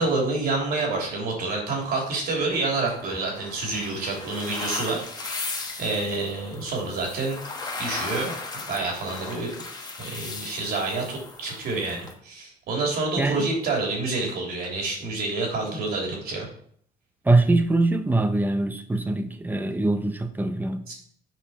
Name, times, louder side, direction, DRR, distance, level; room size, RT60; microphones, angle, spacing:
voice 1, 0.0-7.4 7.8-8.3 8.7-16.5 20.9-21.0, right 3 dB, 65° right, -1 dB, 3.0 m, -28 dB
sound 1, 2.5-12.1, left 3 dB, 25° left, 1.3 m, -37 dB
voice 2, 13.2-13.5 17.2-20.9, right 2 dB, 10° right, 9 dB, 0.8 m, -23 dB
7.6 x 5.2 x 4.2 m, 0.62 s
cardioid pair, 110°, 17 cm